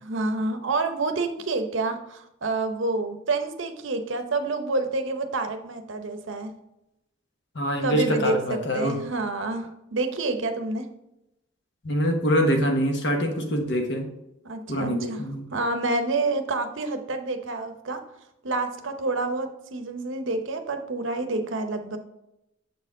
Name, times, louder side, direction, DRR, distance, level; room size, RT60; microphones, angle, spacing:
voice 1, 0.0-6.5 7.8-8.4 8.7-10.8 14.4-15.2 15.5-18.0 18.4-22.0, right 3 dB, 65° right, 7 dB, 0.7 m, -28 dB
voice 2, 7.5-9.0 11.8-14.1 14.7-15.5, equal, 55° left, 3 dB, 1.1 m, -24 dB
6.9 x 4.4 x 3.7 m, 0.88 s
head